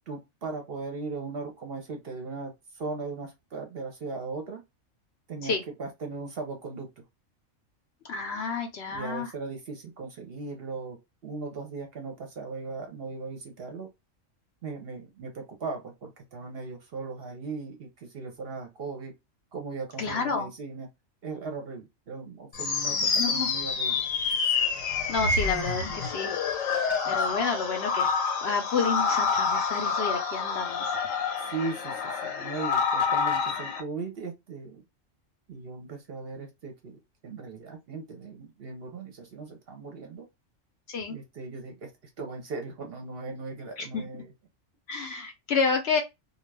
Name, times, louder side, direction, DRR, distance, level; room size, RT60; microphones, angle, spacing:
voice 1, 0.1-4.6 5.3-5.5 5.8-6.9 8.9-11.0 11.2-13.9 14.6-19.1 19.5-20.9 21.2-24.0 27.0-27.2 31.4-34.8 35.5-40.3 41.1-41.9 42.2-44.3, right 4 dB, 55° right, 0.8 m, -38 dB
voice 2, 8.1-9.3 20.0-20.5 23.0-23.5 25.1-26.4 27.0-28.1 28.4-31.0 40.9-41.2 43.8-44.0 44.9-46.0, left 5 dB, 60° left, 0.7 m, -30 dB
sound 1, 22.5-33.8, left 5 dB, 80° left, 1.1 m, -28 dB
2.3 x 2.3 x 3.2 m
omnidirectional pair, 1.4 m